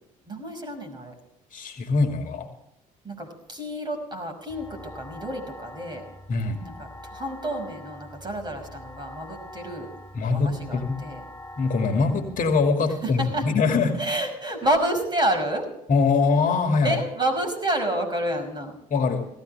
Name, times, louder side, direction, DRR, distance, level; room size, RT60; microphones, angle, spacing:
voice 1, 0.3-1.1 3.0-6.0 6.6-6.7 7.0-9.9 10.3-11.2 11.9-12.0 13.0-13.4 14.0-15.7 16.8-18.8, right 1 dB, 25° right, 5 dB, 5.8 m, -29 dB
voice 2, 1.5-2.5 6.3-6.6 10.1-11.0 11.6-14.0 15.9-17.0 18.9-19.3, left 4 dB, 45° left, 5 dB, 2.3 m, -23 dB
sound 1, 4.5-12.7, left 1 dB, 10° left, 6.3 m, -44 dB
18.0 x 15.5 x 3.5 m, 0.83 s
hypercardioid pair, 65°, 18 cm